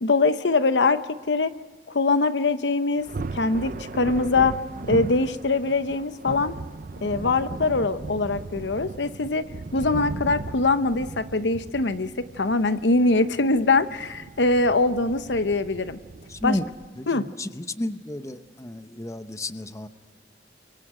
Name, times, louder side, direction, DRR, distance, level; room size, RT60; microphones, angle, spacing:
voice 1, 0.0-1.5 1.9-3.1 3.3-4.6 4.9-6.5 7.0-9.5 9.7-16.0 16.4-16.6 17.1-17.3, left 3 dB, 80° left, 12 dB, 0.9 m, -23 dB
Thunder, 3.0-16.9, right 3 dB, 50° right, 0.5 m, -37 dB
voice 2, 16.3-16.7 17.0-19.9, left 1 dB, 20° left, 10 dB, 0.8 m, -32 dB
29.0 x 23.5 x 5.0 m, 1.5 s
head